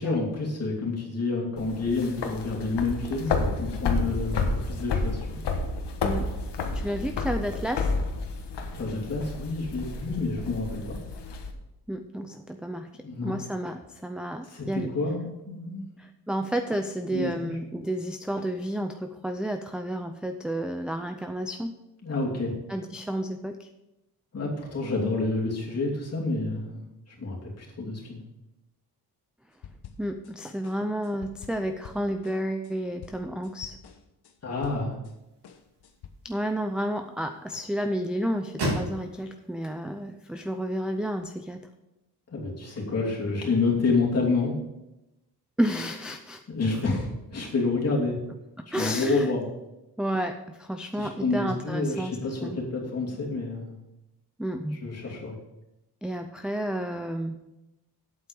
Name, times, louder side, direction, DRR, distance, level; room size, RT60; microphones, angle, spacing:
voice 1, 0.0-5.5 8.7-11.0 13.0-13.3 14.5-15.8 17.1-17.5 22.0-22.6 24.3-26.8 27.1-28.2 34.4-35.0 42.3-44.6 46.5-48.2 48.7-49.4 51.0-53.7 54.8-55.3, left 3 dB, 40° left, -2 dB, 2.8 m, -29 dB
sound 1, 1.6-11.5, left 3 dB, 90° left, 1.4 m, -30 dB
voice 2, 6.7-7.9 11.9-12.9 13.2-14.9 16.0-21.7 22.7-23.7 30.0-33.8 36.2-41.6 45.6-46.4 46.8-47.0 48.7-49.3 50.0-52.2 52.4-52.6 54.4-54.8 55.1-55.2 56.0-57.3, equal, ahead, 5 dB, 0.4 m, -31 dB
sound 2, 29.6-30.3 30.6-35.1 35.4-36.1, left 7 dB, 70° left, 1.1 m, -47 dB
sound 3, 35.0-41.2, right 1 dB, 75° right, 3.6 m, -38 dB
8.6 x 8.1 x 5.3 m, 0.93 s
wide cardioid pair, 155°, 40 cm